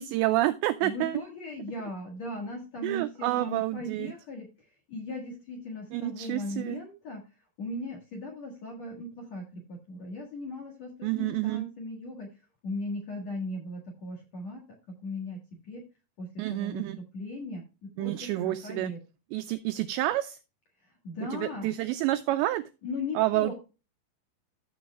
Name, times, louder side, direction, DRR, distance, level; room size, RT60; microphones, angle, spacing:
voice 1, 0.0-1.2 2.8-4.1 5.9-6.8 11.0-11.6 16.4-17.0 18.0-18.9 19.3-20.4 21.3-22.6 23.2-23.5, right 16 dB, 90° right, 10 dB, 2.5 m, -29 dB
voice 2, 0.8-14.6 14.9-15.9 16.2-16.8 17.1-19.0 20.8-21.7 22.8-23.5, left 2 dB, 55° left, 0 dB, 2.0 m, -38 dB
14.0 x 7.0 x 2.3 m, 0.30 s
omnidirectional pair, 5.7 m